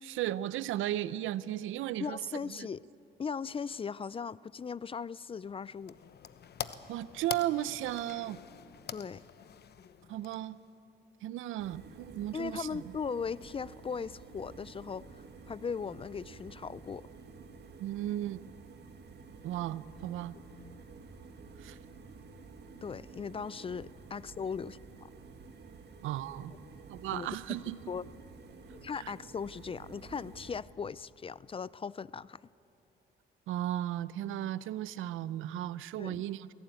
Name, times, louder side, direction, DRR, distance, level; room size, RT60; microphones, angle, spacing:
voice 1, 0.0-2.7 6.9-8.4 10.1-10.6 11.2-12.8 17.8-18.4 19.4-20.4 21.6-21.8 26.0-26.5 26.9-27.8 29.0-29.1 33.5-36.5, right 13 dB, 85° right, 0.6 m, -35 dB
voice 2, 2.0-2.8 3.2-6.0 8.9-9.2 12.3-17.1 22.8-25.1 27.1-27.4 27.9-28.1 28.7-32.4 36.0-36.2, left 6 dB, 30° left, 0.4 m, -38 dB
sound 1, 5.4-10.8, left 8 dB, 55° left, 1.0 m, -45 dB
sound 2, 11.6-30.6, right 4 dB, 60° right, 2.0 m, -51 dB
22.5 x 16.5 x 9.1 m
cardioid pair, 90°, 20 cm